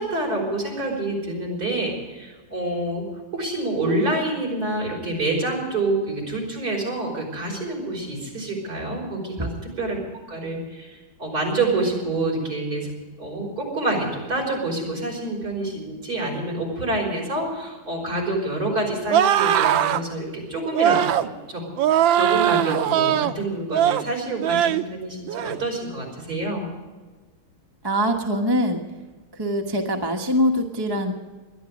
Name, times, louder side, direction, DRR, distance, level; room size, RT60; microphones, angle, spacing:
voice 1, 0.0-3.0 3.3-10.0 10.3-12.9 13.2-21.6 21.9-26.7, right 2 dB, 45° right, -1 dB, 5.6 m, -27 dB
sound 1, 19.1-20.0 20.7-21.3 21.8-23.3 23.7-24.1 24.4-24.8 25.3-25.6, right 10 dB, 70° right, 1.4 m, -20 dB
voice 2, 27.8-28.8 29.3-31.1, equal, 15° right, 2 dB, 0.9 m, -23 dB
20.5 x 12.0 x 5.2 m, 1.3 s
omnidirectional pair, 2.3 m